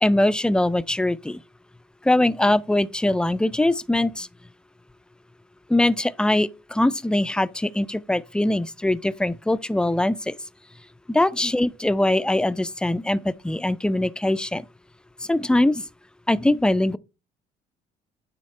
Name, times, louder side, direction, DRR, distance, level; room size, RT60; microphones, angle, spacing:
voice 1, 0.0-1.4 2.0-4.3 5.7-10.4 11.1-14.6 15.3-15.8 16.3-17.0, left 1 dB, 5° left, 0.3 m, -22 dB
9.4 x 3.5 x 4.3 m
cardioid pair, 110°, 17 cm